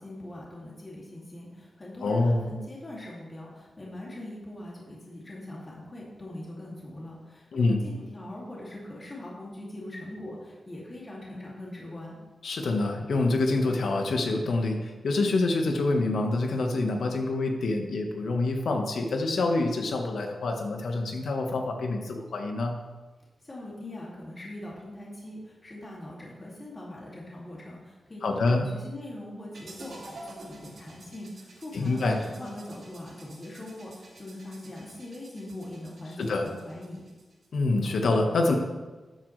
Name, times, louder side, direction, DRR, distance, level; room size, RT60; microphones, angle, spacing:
voice 1, 0.0-12.2 23.4-37.1, left 1 dB, 30° left, -5 dB, 2.5 m, -41 dB
voice 2, 2.0-2.4 7.5-7.8 12.4-22.8 28.2-28.6 31.7-32.2 36.2-36.5 37.5-38.5, left 2 dB, 80° left, 3 dB, 1.4 m, -26 dB
sound 1, 29.5-37.6, right 2 dB, 75° right, 2.8 m, -50 dB
13.0 x 8.3 x 3.3 m, 1.2 s
wide cardioid pair, 120°, 0 cm